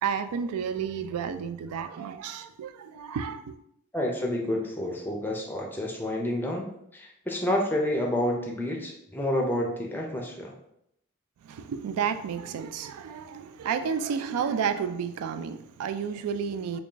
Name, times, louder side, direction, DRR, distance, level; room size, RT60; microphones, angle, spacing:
voice 1, 0.0-3.5 11.4-16.8, right 7 dB, 85° right, 0.3 m, -31 dB
voice 2, 3.9-6.7 6.9-10.5, left 1 dB, 10° left, 0.4 m, -29 dB
3.5 x 2.3 x 3.8 m
head